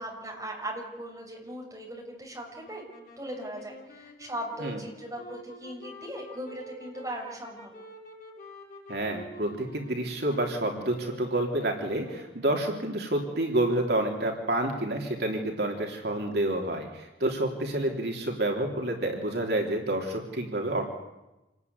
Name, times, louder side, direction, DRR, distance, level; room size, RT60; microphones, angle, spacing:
voice 1, 0.0-2.8 3.2-7.7, right 1 dB, 20° right, -1 dB, 6.5 m, -38 dB
sound 1, 2.6-12.6, left 1 dB, 45° left, 7.7 m, -49 dB
voice 2, 8.9-20.9, right 1 dB, 65° right, 2 dB, 3.5 m, -29 dB
27.5 x 20.0 x 9.7 m, 0.99 s
head